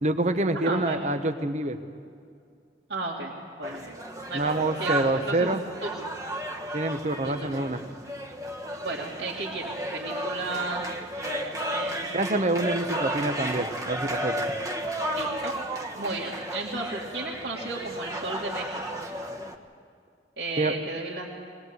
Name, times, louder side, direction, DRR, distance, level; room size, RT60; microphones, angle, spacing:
voice 1, 0.0-1.8 4.3-5.6 6.7-7.8 12.1-14.4 20.6-20.8, right 2 dB, 40° right, 8 dB, 1.1 m, -26 dB
voice 2, 0.5-1.1 2.9-3.3 3.6-3.9 4.3-5.5 5.8-6.1 7.2-7.7 8.8-10.8 11.2-12.1 12.8-13.1 15.1-15.6 15.9-19.0 20.4-21.3, right 2 dB, 75° right, -5 dB, 2.6 m, -34 dB
sound 1, 3.6-19.6, right 1 dB, 20° right, 1.3 m, -33 dB
21.0 x 20.5 x 8.2 m, 2.3 s
head